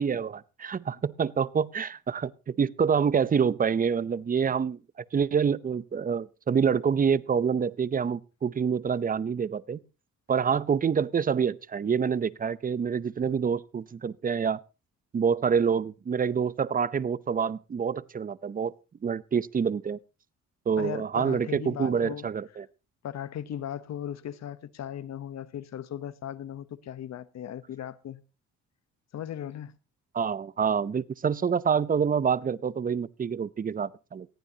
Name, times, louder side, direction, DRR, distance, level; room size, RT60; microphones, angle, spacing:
voice 1, 0.0-4.8 5.1-9.8 10.3-14.6 15.1-18.7 19.0-20.0 20.7-22.7 30.1-34.3, right 6 dB, 30° right, 0.6 m, -27 dB
voice 2, 20.8-22.3 23.0-28.2 29.1-29.7, left 10 dB, 60° left, 0.9 m, -37 dB
19.5 x 14.5 x 2.8 m
cardioid pair, 90°, 30 cm